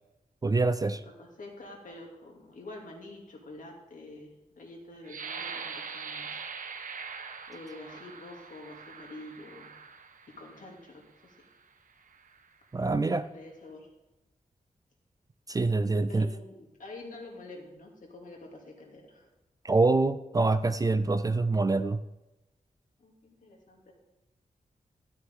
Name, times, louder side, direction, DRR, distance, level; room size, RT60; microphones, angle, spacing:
voice 1, 0.4-1.0 12.7-13.2 15.5-16.3 19.6-22.0, right 3 dB, 25° right, 12 dB, 0.4 m, -25 dB
voice 2, 1.2-6.4 7.5-9.8 10.4-11.3 13.1-13.9 16.1-19.3 23.0-23.9, left 2 dB, 65° left, 0 dB, 2.5 m, -47 dB
sound 1, 5.0-10.7 11.4-11.5 12.0-12.4, right 5 dB, 65° right, 0.9 m, -42 dB
12.5 x 9.7 x 3.7 m, 0.99 s
wide cardioid pair, 175°, 15 cm